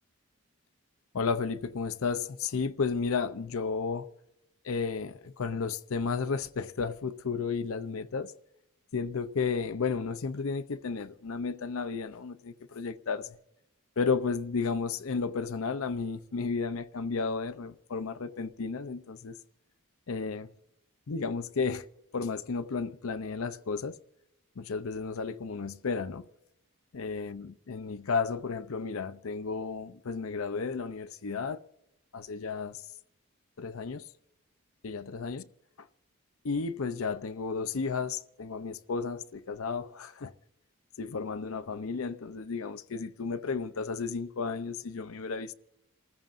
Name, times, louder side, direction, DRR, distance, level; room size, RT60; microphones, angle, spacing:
voice 1, 1.1-4.1 4.6-8.3 8.9-13.4 14.0-19.3 20.1-20.5 21.1-21.8 22.1-24.0 24.6-26.3 26.9-31.6 32.1-32.8 33.6-34.0 34.8-35.5 36.4-40.3 41.0-45.5, left 5 dB, 70° left, 0.6 m, -33 dB
28.5 x 14.5 x 2.5 m
head